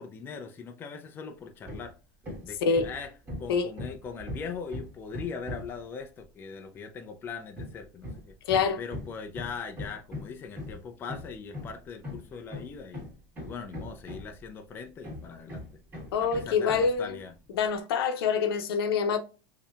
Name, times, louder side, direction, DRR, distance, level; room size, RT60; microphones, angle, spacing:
voice 1, 0.0-2.0 2.4-3.1 3.4-8.3 8.8-13.1 13.4-15.6 16.2-17.3, left 5 dB, 15° left, 0.4 m, -40 dB
Hammer, 1.6-1.9 2.2-5.8 7.5-14.5 15.0-17.0, left 1 dB, 15° right, 1.6 m, -40 dB
voice 2, 8.4-8.8 16.1-17.2 17.5-19.2, left 6 dB, 90° left, 0.7 m, -26 dB
5.2 x 2.7 x 2.3 m
supercardioid pair, 160°, 12 cm